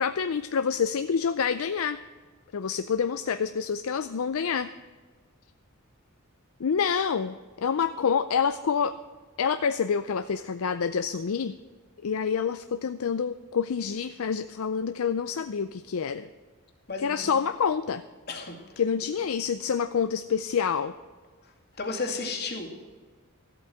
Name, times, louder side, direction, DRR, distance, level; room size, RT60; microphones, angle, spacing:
voice 1, 0.0-2.0 2.5-4.7 6.6-9.0 9.4-11.5 12.0-16.3 17.0-18.0 18.8-20.9, left 6 dB, 70° left, 11 dB, 0.5 m, -27 dB
voice 2, 16.9-17.3 18.3-18.6 21.8-22.7, left 3 dB, 50° left, 1 dB, 2.4 m, -33 dB
13.5 x 8.3 x 7.7 m, 1.5 s
head